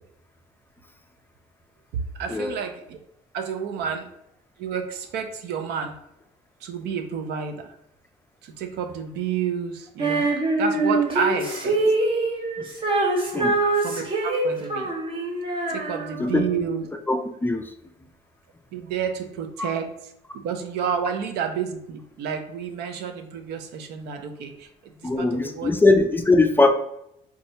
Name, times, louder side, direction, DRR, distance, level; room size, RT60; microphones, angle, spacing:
voice 1, 1.9-3.0 3.3-4.1 4.6-6.0 6.6-7.7 8.4-10.3 10.6-11.8 13.7-14.9 15.7-16.8 18.7-19.9 20.3-25.8, right 7 dB, 80° right, 6 dB, 0.5 m, -30 dB
Female singing, 10.0-16.5, right 2 dB, 30° right, 0.8 m, -24 dB
voice 2, 17.1-17.7 19.6-19.7 25.0-26.7, left 3 dB, 10° left, 5 dB, 0.3 m, -20 dB
2.6 x 2.4 x 4.1 m, 0.77 s
cardioid pair, 110°, 17 cm